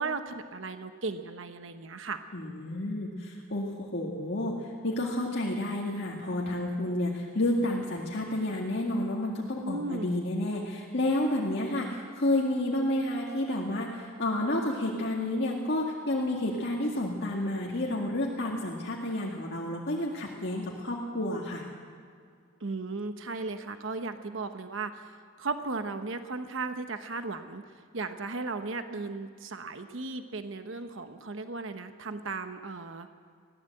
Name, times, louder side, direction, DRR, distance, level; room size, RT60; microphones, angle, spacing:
voice 1, 0.0-2.2 9.6-10.1 22.6-33.1, right 3 dB, 65° right, 8 dB, 1.0 m, -36 dB
voice 2, 2.3-21.6, left 1 dB, 55° left, -3 dB, 2.0 m, -30 dB
21.5 x 16.0 x 7.8 m, 2.2 s
head